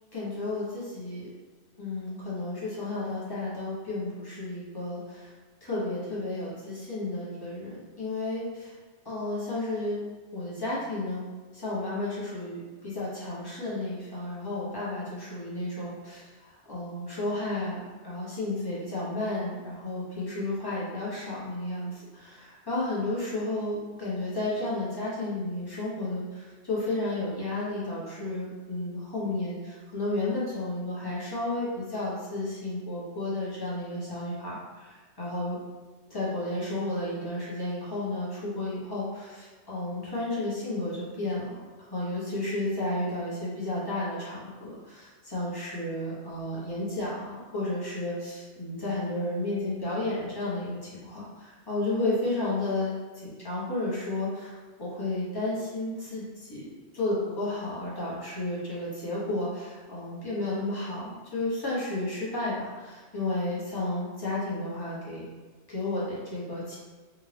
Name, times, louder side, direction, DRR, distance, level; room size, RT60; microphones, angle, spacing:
voice 1, 0.1-1.3 1.8-5.3 5.6-8.8 9.0-10.0 10.3-11.2 11.5-35.6 36.1-41.6 41.9-53.0 53.2-56.7 56.9-65.3 65.7-66.8, left 2 dB, 20° left, -8 dB, 1.1 m, -32 dB
3.7 x 2.6 x 3.3 m, 1.3 s
omnidirectional pair, 1.2 m